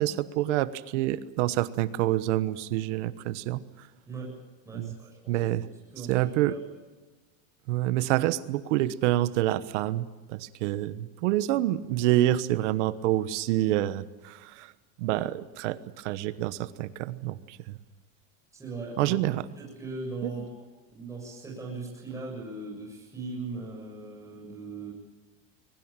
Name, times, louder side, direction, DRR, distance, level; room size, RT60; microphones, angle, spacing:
voice 1, 0.0-3.6 4.7-4.9 5.3-5.6 6.1-6.6 7.7-14.7 15.0-17.8 19.0-19.4 20.2-20.4, right 14 dB, 60° right, 15 dB, 1.2 m, -27 dB
voice 2, 4.1-5.4 5.9-6.6 18.5-19.2 19.6-20.5 20.9-24.9, right 3 dB, 10° right, -3 dB, 7.4 m, -39 dB
23.0 x 20.0 x 9.0 m, 1.2 s
supercardioid pair, 160°, 39 cm